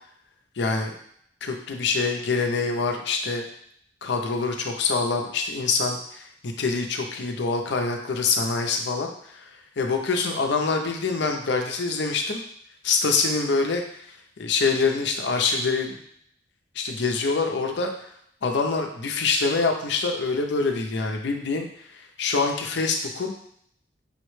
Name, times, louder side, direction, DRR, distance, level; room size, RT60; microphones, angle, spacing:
voice 1, 0.6-0.9 1.4-3.4 4.0-9.5 9.8-12.4 12.8-14.0 14.4-16.0 16.7-17.9 18.4-23.3, left 4 dB, 65° left, 3 dB, 0.6 m, -25 dB
5.5 x 2.1 x 3.1 m, 0.68 s
head